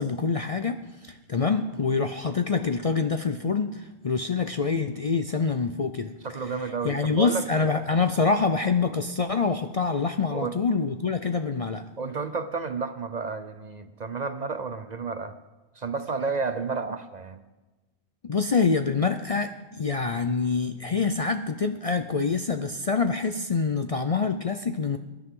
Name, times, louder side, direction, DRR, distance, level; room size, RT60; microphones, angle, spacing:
voice 1, 0.0-6.1 6.8-11.8 18.2-25.0, left 4 dB, 45° left, 8 dB, 0.5 m, -26 dB
voice 2, 6.2-7.7 10.3-10.6 12.0-15.4 15.8-17.4, right 4 dB, 45° right, 10 dB, 0.6 m, -31 dB
23.0 x 11.0 x 3.7 m, 1.2 s
omnidirectional pair, 1.1 m